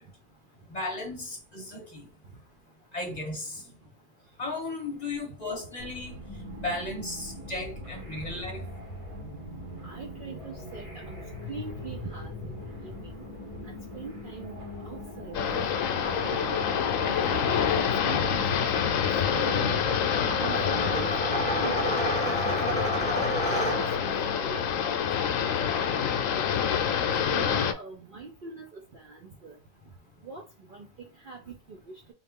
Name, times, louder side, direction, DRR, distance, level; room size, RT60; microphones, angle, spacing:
voice 1, 0.7-2.0 2.9-3.6 4.4-6.1 6.6-8.6, left 2 dB, 35° left, 0.9 m, -35 dB
sound 1, 5.8-25.0, left 1 dB, 25° right, 1.0 m, -42 dB
voice 2, 9.8-13.1 13.6-14.5 14.8-15.7 16.0-16.4 17.1-18.7 19.3-19.8 20.3-22.0 22.3-25.0 25.7-26.1 26.3-26.5 27.3-29.6 30.2-30.4 30.7-30.9 31.2-32.0, right 4 dB, 50° right, 0.7 m, -42 dB
sound 2, 15.3-27.7, left 8 dB, 80° left, 1.0 m, -27 dB
sound 3, 15.9-24.2, right 1 dB, 5° left, 0.8 m, -32 dB
3.8 x 2.4 x 3.6 m
omnidirectional pair, 1.4 m